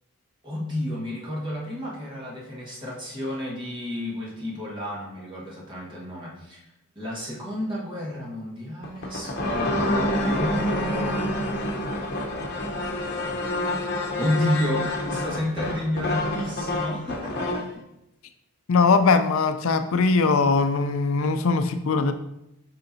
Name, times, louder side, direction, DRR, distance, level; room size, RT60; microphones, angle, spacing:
voice 1, 0.4-6.6 6.9-9.7 10.1-11.5 14.2-17.8, left 1 dB, 20° right, -4 dB, 1.5 m, -31 dB
sound 1, 8.8-17.7, left 1 dB, 50° left, 0.9 m, -27 dB
voice 2, 18.7-22.1, left 4 dB, 65° left, 9 dB, 0.4 m, -21 dB
6.7 x 5.6 x 2.7 m, 0.86 s
head